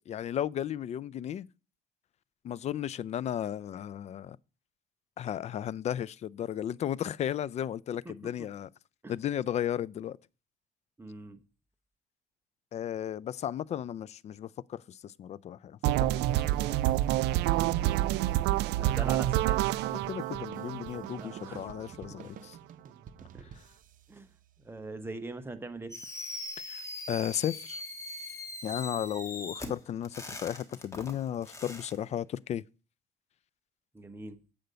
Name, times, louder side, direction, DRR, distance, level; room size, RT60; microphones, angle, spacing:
voice 1, 0.0-1.5 2.4-4.4 5.2-8.7 9.1-10.2 12.7-16.8 20.1-22.6 26.6-27.8 28.6-32.6, left 10 dB, 40° left, 0.4 m, -35 dB
voice 2, 11.0-11.4 18.8-19.6 21.2-21.6 21.9-22.0 23.3-23.5 24.1-24.3 24.6-25.9 33.9-34.4, right 2 dB, 15° right, 1.0 m, -42 dB
sound 1, 15.8-21.8, right 15 dB, 80° right, 0.4 m, -28 dB
sound 2, 16.2-25.0, right 7 dB, 50° right, 0.8 m, -50 dB
Fireworks, 25.9-31.9, left 2 dB, 15° left, 1.5 m, -41 dB
8.0 x 5.1 x 6.7 m
cardioid pair, 110°, 17 cm